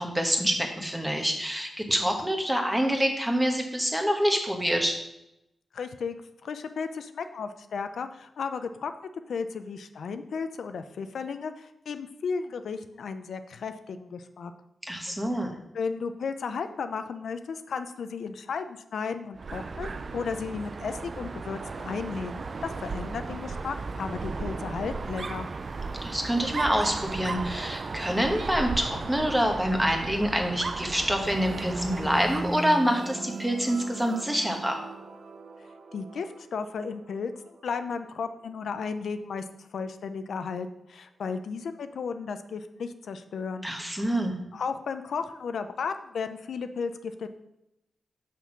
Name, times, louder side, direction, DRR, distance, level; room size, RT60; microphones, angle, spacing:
voice 1, 0.0-5.0 14.9-15.5 26.0-34.8 43.6-44.3, equal, 5° right, 3 dB, 1.1 m, -26 dB
voice 2, 5.7-6.1 6.4-14.5 15.7-25.5 35.9-43.7 44.5-47.3, left 5 dB, 80° left, 9 dB, 0.5 m, -34 dB
Dog, 19.4-32.7, right 4 dB, 40° right, 0.3 m, -35 dB
sound 1, 31.2-38.7, right 2 dB, 70° right, 0.9 m, -39 dB
6.1 x 5.8 x 5.9 m, 0.86 s
wide cardioid pair, 140°, 0 cm